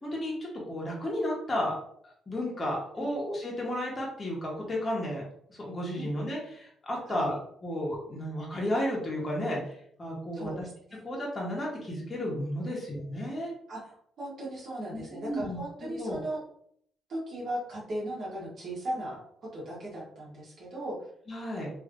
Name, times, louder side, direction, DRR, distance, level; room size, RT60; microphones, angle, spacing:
voice 1, 0.0-1.7 2.3-5.2 5.5-7.3 7.6-9.7 10.0-10.7 11.0-13.5 14.9-16.2 21.3-21.7, left 1 dB, 30° left, -3 dB, 1.1 m, -33 dB
voice 2, 7.1-7.4 10.3-11.0 12.7-12.8 13.7-16.4 17.1-21.1, right 1 dB, 55° right, -6 dB, 1.3 m, -37 dB
3.1 x 2.7 x 2.5 m, 0.66 s
cardioid pair, 90°, 0 cm